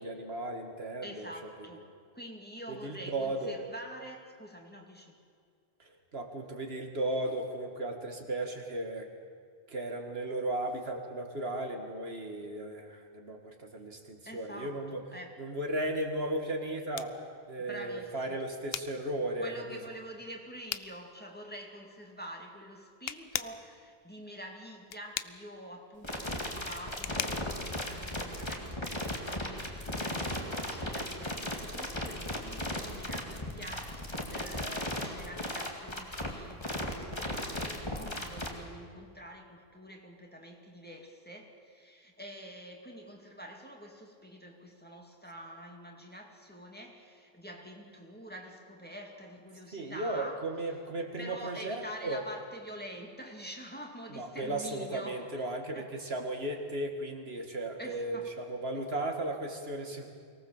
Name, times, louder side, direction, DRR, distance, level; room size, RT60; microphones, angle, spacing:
voice 1, 0.0-1.5 2.7-3.5 5.8-9.1 9.7-15.0 15.4-17.1 17.5-19.8 49.7-52.2 54.1-60.1, right 1 dB, 75° right, 3 dB, 2.3 m, -35 dB
voice 2, 1.0-1.9 2.1-5.2 14.3-15.4 17.6-18.4 19.4-50.8 51.2-55.5 55.7-55.9 57.8-58.3 58.7-58.9, equal, 10° left, 1 dB, 2.3 m, -46 dB
sound 1, 16.2-28.7, left 9 dB, 70° left, 0.9 m, -43 dB
sound 2, 26.0-38.5, left 1 dB, 25° left, 2.3 m, -36 dB
24.0 x 18.5 x 7.3 m, 2.2 s
omnidirectional pair, 1.0 m